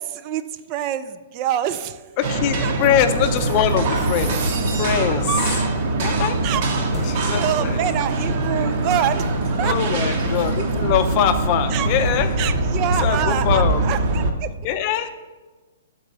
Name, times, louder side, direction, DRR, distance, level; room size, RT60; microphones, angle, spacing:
voice 1, 0.0-2.0 2.6-2.7 5.3-5.4 6.4-6.6 7.4-9.3 9.6-9.8 11.7-11.9 12.4-14.5, right 10 dB, 35° right, 12 dB, 0.3 m, -25 dB
voice 2, 2.2-4.3 4.7-5.4 6.0-6.4 7.1-7.8 8.3-8.4 9.6-12.3 13.0-13.8 14.6-15.1, left 10 dB, 40° left, 9 dB, 0.5 m, -22 dB
sound 1, 2.2-14.3, right 2 dB, 50° right, 0.9 m, -22 dB
sound 2, 4.2-5.0 6.9-7.2, left 4 dB, 15° left, 1.1 m, -33 dB
6.4 x 4.0 x 6.1 m, 1.2 s
hypercardioid pair, 140°, 0 cm